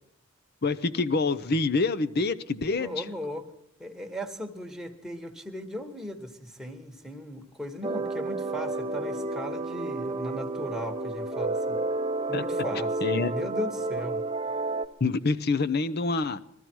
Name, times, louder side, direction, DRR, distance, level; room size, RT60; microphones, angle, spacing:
voice 1, 0.6-3.0 12.3-12.4 13.0-13.3 15.0-16.4, left 3 dB, 50° left, 13 dB, 0.7 m, -26 dB
voice 2, 2.8-3.4 3.8-11.8 12.3-14.2, equal, ahead, 2 dB, 1.4 m, -37 dB
sound 1, 7.8-14.9, right 2 dB, 25° right, 0.6 m, -31 dB
21.5 x 14.0 x 4.6 m, 0.77 s
head